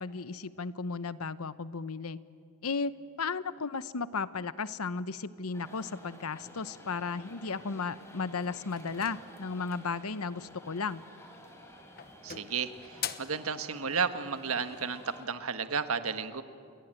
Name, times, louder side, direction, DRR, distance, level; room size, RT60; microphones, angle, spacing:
voice 1, 0.0-2.2 2.6-11.0, left 4 dB, 90° left, 15 dB, 0.9 m, -35 dB
sound 1, 5.5-15.3, left 1 dB, 15° left, 4.2 m, -52 dB
sound 2, 8.8-10.0 11.2-11.6 12.0-13.4, left 9 dB, 45° left, 1.1 m, -42 dB
voice 2, 12.2-16.4, right 5 dB, 75° right, 9 dB, 1.4 m, -33 dB
29.5 x 22.5 x 9.0 m, 2.3 s
head